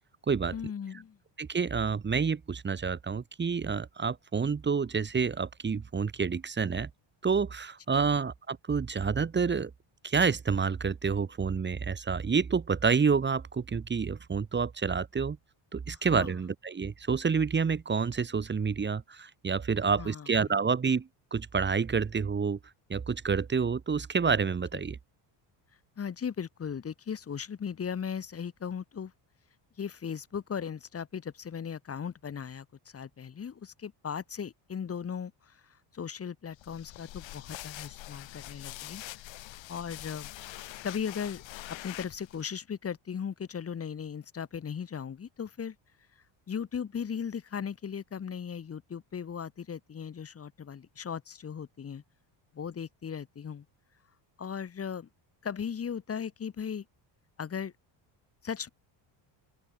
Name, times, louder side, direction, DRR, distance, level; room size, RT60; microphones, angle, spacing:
voice 1, 0.5-1.2 7.9-8.1 15.9-16.3 20.0-20.3 26.0-29.1 29.8-39.0 39.7-40.3 40.8-45.8 46.5-52.0 52.5-53.7 54.4-55.1 55.4-56.8 57.4-57.7 58.4-58.7, left 7 dB, 30° left, 2.4 m, -37 dB
voice 2, 1.4-6.9 7.2-9.7 10.0-15.4 15.7-22.6 22.9-25.0, right 5 dB, 25° right, 2.2 m, -28 dB
sound 1, 36.6-42.5, left 16 dB, 75° left, 6.9 m, -44 dB
open air
cardioid pair, 145°, 46 cm